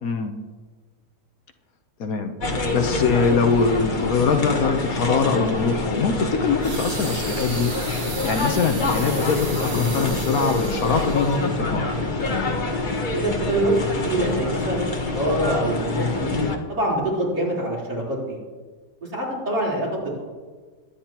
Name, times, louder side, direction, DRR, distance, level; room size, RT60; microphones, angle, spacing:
voice 1, 0.0-0.3 2.0-7.7 8.0-11.9, left 5 dB, 60° left, 6 dB, 1.2 m, -23 dB
sound 1, 2.4-16.6, left 2 dB, 35° left, 1.1 m, -26 dB
sound 2, 6.6-11.6 12.2-12.4, right 3 dB, 55° right, 2.1 m, -35 dB
voice 2, 13.1-16.3 16.7-18.4 19.1-19.9 20.2-20.3, right 1 dB, 75° right, -6 dB, 4.5 m, -25 dB
22.0 x 9.8 x 3.0 m, 1.4 s
omnidirectional pair, 1.8 m